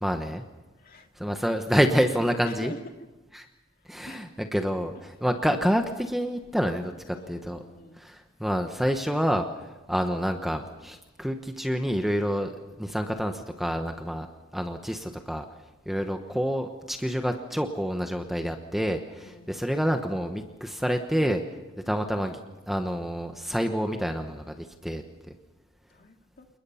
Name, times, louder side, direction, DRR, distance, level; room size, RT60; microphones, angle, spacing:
voice 1, 0.0-0.4 1.2-2.7 3.3-3.4 3.9-7.6 8.0-12.5 12.8-14.3 14.5-15.4 15.9-21.4 21.9-22.4 22.7-25.0, equal, ahead, 5 dB, 1.1 m, -28 dB
voice 2, 0.8-1.1 2.4-2.8 3.8-4.4 5.3-5.6 7.1-8.0 19.2-19.5 22.2-22.4 25.9-26.5, left 2 dB, 45° left, 4 dB, 2.2 m, -45 dB
29.0 x 20.5 x 5.8 m, 1.1 s
head